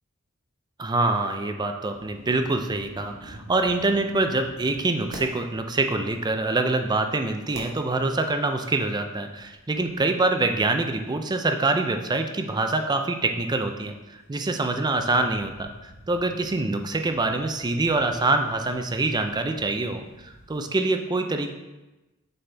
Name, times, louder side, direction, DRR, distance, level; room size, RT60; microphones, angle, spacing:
voice 1, 0.8-21.5, right 2 dB, 20° right, 6 dB, 0.4 m, -25 dB
sound 1, 1.9-20.6, right 1 dB, 50° right, 1.3 m, -49 dB
7.6 x 4.2 x 3.4 m, 1.1 s
head